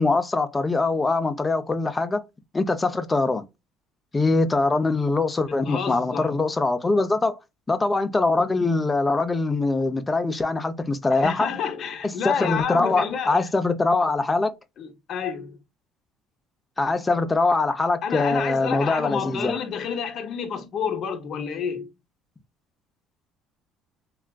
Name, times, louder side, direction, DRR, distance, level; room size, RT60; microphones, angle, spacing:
voice 1, 0.0-2.2 2.5-3.4 4.1-7.4 7.7-11.5 12.2-14.5 16.8-19.6, left 3 dB, 15° left, 0.5 m, -23 dB
voice 2, 5.5-6.4 11.1-13.5 14.8-15.6 17.1-17.2 18.0-21.9, left 7 dB, 55° left, 0.7 m, -29 dB
3.3 x 2.4 x 2.2 m
cardioid pair, 120°, 0 cm